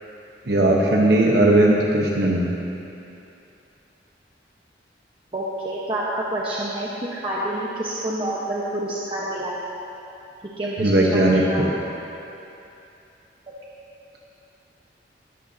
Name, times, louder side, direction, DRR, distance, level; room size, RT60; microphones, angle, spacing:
voice 1, 0.5-2.5 10.8-11.7, right 1 dB, 60° right, -2 dB, 1.2 m, -18 dB
voice 2, 5.3-9.5 10.6-10.9 11.3-11.6, right 1 dB, 30° right, -6 dB, 1.2 m, -28 dB
21.0 x 14.0 x 2.9 m, 2.8 s
head